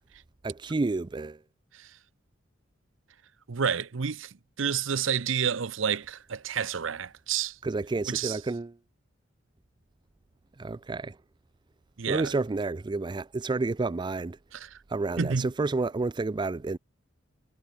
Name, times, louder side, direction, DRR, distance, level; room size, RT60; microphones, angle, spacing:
voice 1, 0.4-1.4 7.6-8.8 10.6-11.2 12.1-14.4 14.9-16.8, right 3 dB, 25° right, 0.4 m, -30 dB
voice 2, 3.5-7.6 8.0-8.4 12.0-12.3 14.5-14.8 15.2-15.5, right 7 dB, 80° right, 0.7 m, -30 dB
head